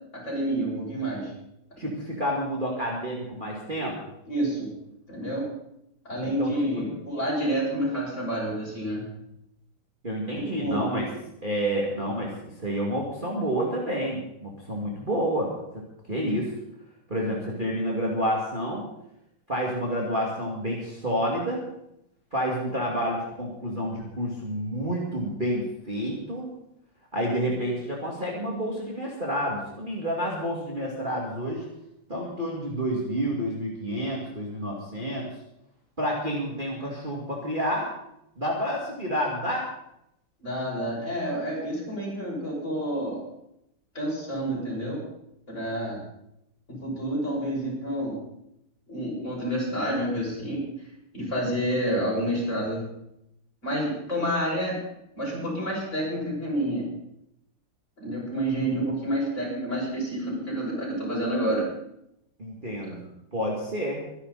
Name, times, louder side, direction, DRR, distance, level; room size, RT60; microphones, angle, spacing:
voice 1, 0.1-1.3 4.3-4.7 5.1-5.4 6.1-9.0 10.4-10.9 40.4-43.2 43.9-45.0 45.5-46.0 46.7-48.2 48.9-50.6 51.1-52.8 53.6-54.8 55.2-56.9 58.0-61.7 62.9-63.0, right 1 dB, 35° left, -4 dB, 7.2 m, -29 dB
voice 2, 1.8-4.0 6.4-6.8 10.0-11.1 11.4-12.3 12.6-15.5 16.1-16.5 17.1-18.8 19.5-21.6 22.3-26.5 27.1-31.6 32.1-35.3 36.0-37.9 38.4-39.6 62.4-63.0 63.3-64.0, equal, 25° right, -3 dB, 2.6 m, -29 dB
24.0 x 11.0 x 4.3 m, 0.80 s
omnidirectional pair, 2.3 m